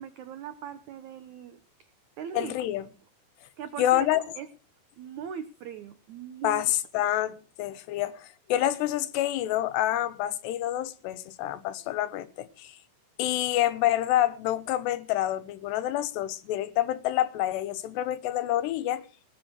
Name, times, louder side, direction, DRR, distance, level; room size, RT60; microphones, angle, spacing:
voice 1, 0.0-1.6 2.2-2.5 3.6-4.1 4.4-4.5 5.0-6.6, right 8 dB, 90° right, 1.6 m, -39 dB
voice 2, 2.3-2.9 3.8-4.2 6.4-12.8 13.2-19.1, left 13 dB, 85° left, 3.2 m, -27 dB
19.0 x 8.4 x 6.3 m
omnidirectional pair, 4.8 m